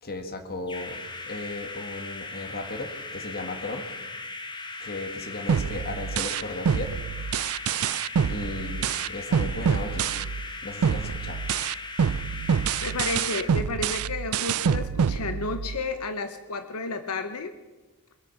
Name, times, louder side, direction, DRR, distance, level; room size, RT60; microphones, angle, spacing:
voice 1, 0.0-3.9 4.8-6.9 8.3-10.1 10.6-11.4, left 2 dB, 45° left, 6 dB, 1.7 m, -36 dB
sound 1, 0.7-13.5, left 3 dB, 20° left, 1.1 m, -38 dB
sound 2, 5.5-10.5 10.8-15.8, right 7 dB, 70° right, 0.4 m, -26 dB
voice 2, 12.8-17.5, left 3 dB, 85° left, 9 dB, 0.9 m, -32 dB
23.5 x 8.9 x 5.9 m, 1.2 s
head